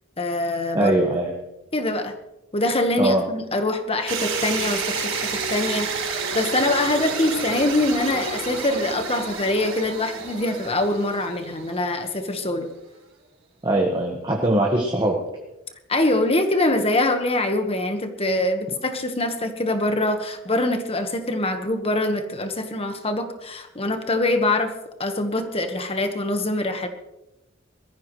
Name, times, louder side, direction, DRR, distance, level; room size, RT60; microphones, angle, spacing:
voice 1, 0.2-0.9 1.7-2.1 2.5-12.7 15.9-24.7 25.0-26.9, left 2 dB, 30° left, 6 dB, 1.5 m, -24 dB
voice 2, 0.7-1.3 3.0-3.2 13.6-15.2, right 1 dB, 20° right, -1 dB, 1.6 m, -21 dB
sound 1, 4.1-12.1, right 5 dB, 70° right, 4.9 m, -30 dB
21.5 x 14.5 x 3.3 m, 0.94 s
head